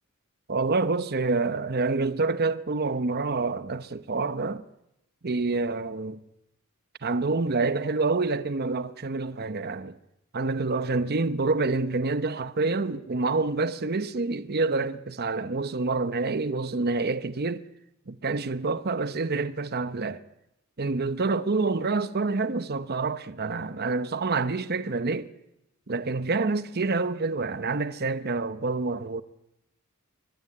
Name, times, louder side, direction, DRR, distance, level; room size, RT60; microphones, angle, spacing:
voice 1, 0.5-4.6 5.2-6.2 7.0-10.0 10.3-17.6 18.1-20.2 20.8-25.3 25.9-29.2, right 3 dB, 50° right, 0.9 m, -27 dB
22.5 x 22.0 x 9.9 m
head